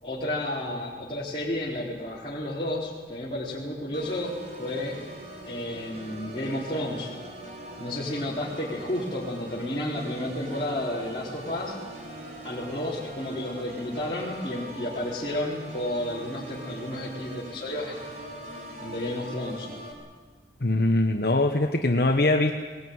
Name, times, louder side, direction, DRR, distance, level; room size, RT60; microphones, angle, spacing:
voice 1, 0.0-4.9 5.4-7.1 7.8-11.8 12.4-18.2 18.8-19.7, left 1 dB, 30° left, -7 dB, 4.0 m, -32 dB
Organ, 3.9-19.9, right 1 dB, 40° right, 4.8 m, -42 dB
voice 2, 20.6-22.5, left 2 dB, 60° left, 3 dB, 1.2 m, -22 dB
20.0 x 20.0 x 9.5 m, 1.4 s
head